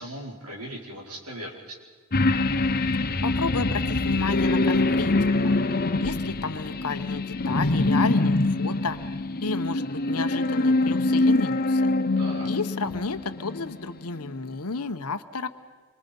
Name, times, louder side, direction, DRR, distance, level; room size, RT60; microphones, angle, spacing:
voice 1, 0.0-1.8 12.2-12.5, equal, 85° right, 0 dB, 4.8 m, -38 dB
sound 1, 2.1-13.9 14.3-14.4, left 2 dB, 45° left, 0.9 m, -24 dB
voice 2, 3.2-5.5 6.0-9.0 9.4-11.9 12.4-15.5, left 4 dB, 85° left, 9 dB, 1.1 m, -32 dB
27.0 x 24.5 x 5.5 m, 1.5 s
head